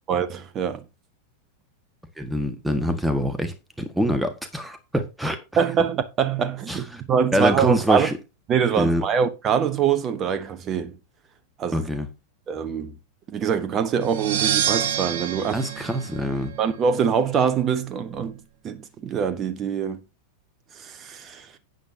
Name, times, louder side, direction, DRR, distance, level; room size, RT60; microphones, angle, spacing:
voice 1, 0.1-0.8 5.6-8.1 8.5-11.0 11.6-11.9 12.5-13.0 13.3-15.6 16.6-20.0 20.7-21.5, right 7 dB, 30° right, 1.0 m, -24 dB
voice 2, 2.2-5.4 6.7-6.8 7.3-8.1 8.8-9.0 11.7-12.1 15.5-16.5, equal, 5° right, 1.5 m, -24 dB
sound 1, 14.0-16.9, right 9 dB, 55° right, 0.8 m, -27 dB
12.0 x 9.0 x 2.7 m
figure-of-eight pair, 90°, 0 cm